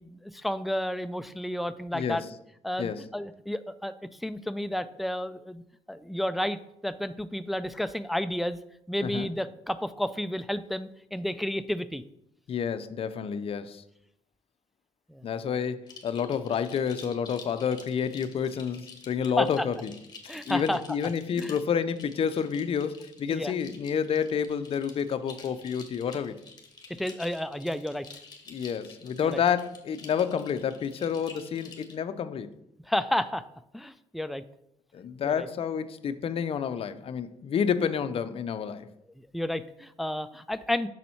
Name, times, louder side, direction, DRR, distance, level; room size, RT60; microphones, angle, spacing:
voice 1, 0.0-2.2 2.6-3.9 4.2-5.6 5.9-8.6 8.9-12.0 15.1-15.2 19.4-19.7 20.3-20.8 21.4-21.5 23.3-23.5 27.0-28.1 29.2-29.4 32.9-33.4 33.7-34.4 35.2-35.5 39.2-40.9, left 1 dB, ahead, 11 dB, 0.3 m, -31 dB
voice 2, 1.9-2.2 2.8-3.0 9.0-9.3 12.5-13.8 15.2-19.9 20.5-26.4 28.5-32.5 34.9-38.9, left 7 dB, 50° left, 11 dB, 0.5 m, -29 dB
sound 1, 15.9-32.0, left 4 dB, 35° left, 1.2 m, -50 dB
6.3 x 4.1 x 4.3 m, 0.79 s
supercardioid pair, 70°, 13 cm